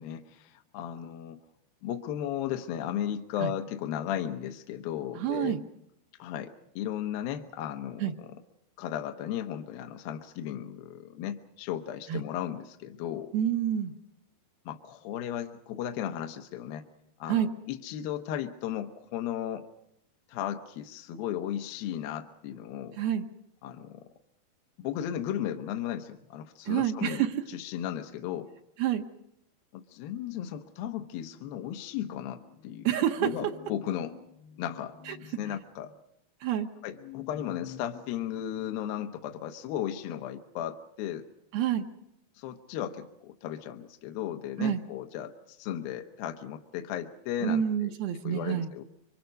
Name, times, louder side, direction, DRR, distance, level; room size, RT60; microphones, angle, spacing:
voice 1, 0.0-1.4 1.8-5.6 6.2-8.4 8.8-13.3 14.7-16.8 17.2-19.7 20.3-23.0 23.6-24.1 24.8-28.5 29.7-32.9 33.2-35.9 36.8-41.3 42.4-47.9 48.2-48.8, left 10 dB, 75° left, 6 dB, 2.7 m, -35 dB
voice 2, 5.2-5.6 8.0-8.1 12.1-12.2 13.3-13.9 17.3-17.5 22.9-23.3 26.7-27.3 28.8-29.0 32.8-33.3 35.1-35.2 36.4-36.7 41.5-41.9 44.6-44.8 47.4-48.7, right 10 dB, 80° right, 2 dB, 2.9 m, -28 dB
27.0 x 24.5 x 5.3 m, 0.78 s
omnidirectional pair, 4.4 m